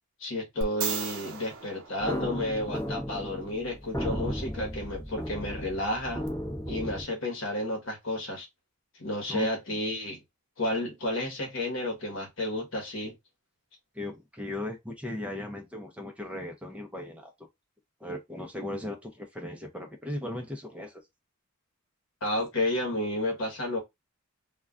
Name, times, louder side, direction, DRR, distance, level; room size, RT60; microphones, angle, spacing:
voice 1, 0.2-6.2 6.7-8.5 9.0-10.2 10.6-13.1 22.2-23.8, left 1 dB, 60° left, 1.0 m, -31 dB
sound 1, 0.6-2.8 6.3-6.4, right 6 dB, 75° right, 0.6 m, -36 dB
sound 2, 2.0-7.0, equal, 15° left, 0.8 m, -35 dB
voice 2, 13.9-17.3 18.0-21.0, left 1 dB, 5° right, 0.4 m, -37 dB
2.3 x 2.2 x 3.5 m
head